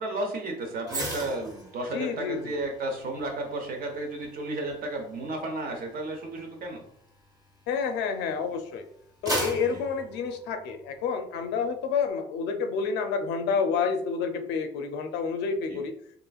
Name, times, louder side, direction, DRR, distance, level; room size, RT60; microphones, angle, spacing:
voice 1, 0.0-6.8 9.7-9.8 15.6-15.8, right 2 dB, 55° right, 3 dB, 0.8 m, -33 dB
sound 1, 0.8-8.3 8.7-11.1 11.5-11.7, right 1 dB, 20° right, 1.0 m, -38 dB
voice 2, 1.9-2.5 7.7-8.8 9.2-15.9, left 5 dB, 90° left, 7 dB, 0.4 m, -29 dB
3.0 x 2.5 x 2.3 m, 0.65 s
cardioid pair, 110°, 17 cm